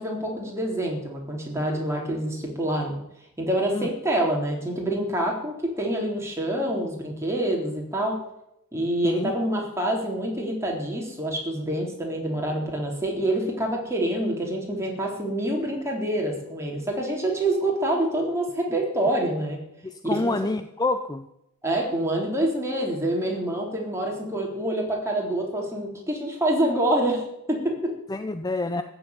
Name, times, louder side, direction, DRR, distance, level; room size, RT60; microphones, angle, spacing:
voice 1, 0.0-3.0 3.4-8.2 8.7-19.6 20.0-20.3 21.6-27.9, right 1 dB, 15° right, -1 dB, 3.8 m, -26 dB
voice 2, 19.8-21.3 28.1-28.8, left 2 dB, 15° left, 9 dB, 0.5 m, -27 dB
15.0 x 7.3 x 9.7 m, 0.83 s
head